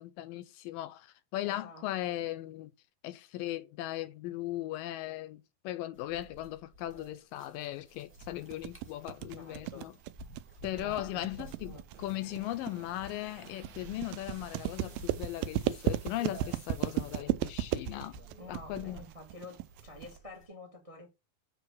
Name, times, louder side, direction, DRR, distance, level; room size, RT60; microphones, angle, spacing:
voice 1, 0.0-2.7 3.0-9.9 10.6-18.2 18.5-19.0, left 15 dB, 80° left, 2.2 m, -38 dB
voice 2, 1.4-2.2 9.4-9.9 10.8-11.8 18.4-21.1, left 2 dB, 30° right, 0.6 m, -49 dB
sound 1, 5.9-20.4, right 1 dB, 5° left, 0.9 m, -53 dB
sound 2, 8.2-20.2, right 14 dB, 85° right, 2.3 m, -35 dB
sound 3, 11.9-17.2, right 8 dB, 65° right, 1.6 m, -55 dB
7.5 x 3.3 x 6.2 m
omnidirectional pair, 4.1 m